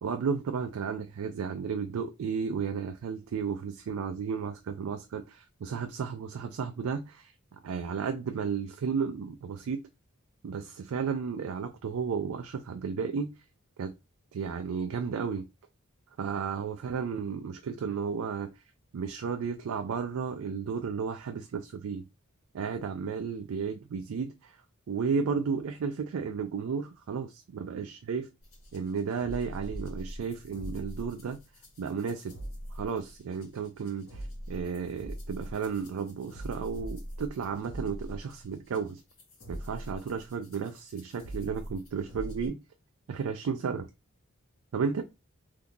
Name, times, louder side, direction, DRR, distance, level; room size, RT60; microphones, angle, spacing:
voice 1, 0.0-7.3 7.6-9.8 10.4-13.3 13.8-13.9 14.3-15.4 16.2-18.5 18.9-22.0 22.5-24.6 24.9-28.3 28.7-31.4 31.8-32.3 32.7-39.0 39.5-42.6 43.1-43.9 44.7-45.0, right 6 dB, 75° right, 0.4 m, -33 dB
sound 1, 28.4-42.5, equal, 75° left, 1.7 m, -42 dB
3.6 x 2.8 x 2.3 m
head